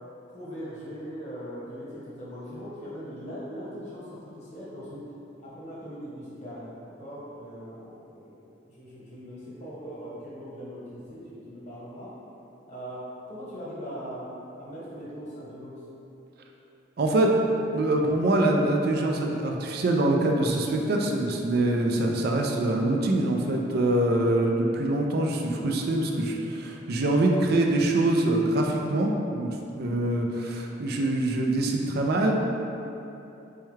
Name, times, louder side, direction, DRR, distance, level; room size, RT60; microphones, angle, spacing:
voice 1, 0.3-5.0 5.4-8.4 8.7-12.1 12.6-15.9, equal, 40° left, -8 dB, 1.0 m, -40 dB
voice 2, 17.0-17.3 17.7-32.3, right 1 dB, 55° right, 1 dB, 0.4 m, -24 dB
4.3 x 2.3 x 3.2 m, 2.9 s
head